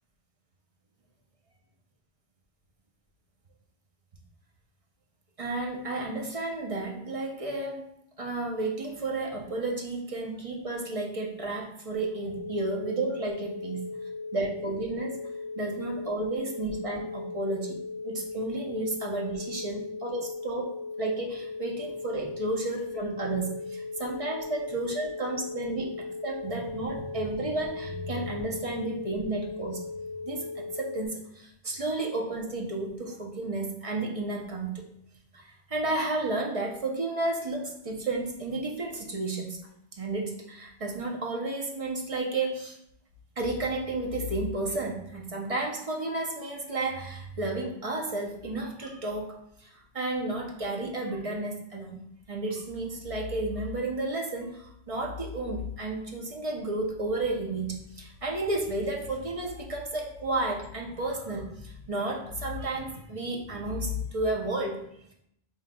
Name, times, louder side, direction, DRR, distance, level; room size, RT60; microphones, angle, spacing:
voice 1, 5.4-7.8 8.2-13.9 14.3-15.2 15.6-17.8 18.0-29.8 30.2-34.8 35.3-39.6 39.9-42.8 43.4-49.3 49.6-52.0 52.3-64.8, right 2 dB, 40° right, 0 dB, 0.6 m, -32 dB
sound 1, 11.9-31.1, left 3 dB, 45° left, 1.1 m, -38 dB
5.5 x 3.1 x 2.2 m, 0.74 s
omnidirectional pair, 1.1 m